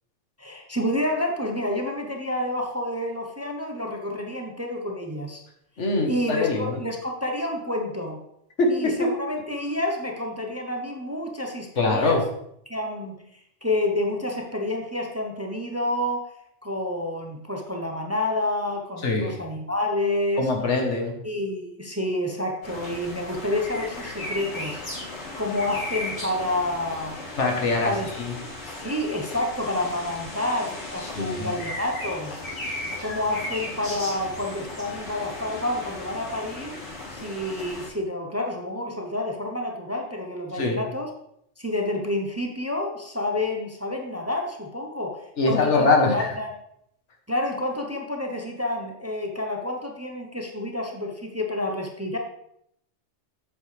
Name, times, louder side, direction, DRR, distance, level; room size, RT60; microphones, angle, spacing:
voice 1, 0.4-5.4 6.1-8.2 8.7-12.2 12.7-13.2 13.6-16.3 16.6-20.5 21.2-27.2 27.8-28.1 28.7-32.4 33.0-36.8 37.1-41.1 41.6-46.5 47.3-52.2, left 1 dB, 15° right, 2 dB, 0.8 m, -29 dB
voice 2, 5.8-6.8 8.6-9.1 11.8-12.2 19.0-19.3 20.4-21.2 27.4-27.9 28.2-28.3 31.1-31.5 40.5-40.8 45.4-46.3, left 3 dB, 80° left, 2 dB, 1.7 m, -23 dB
sound 1, 22.6-37.9, left 2 dB, 60° left, 3.9 m, -36 dB
8.2 x 7.0 x 3.4 m, 0.75 s
omnidirectional pair, 1.2 m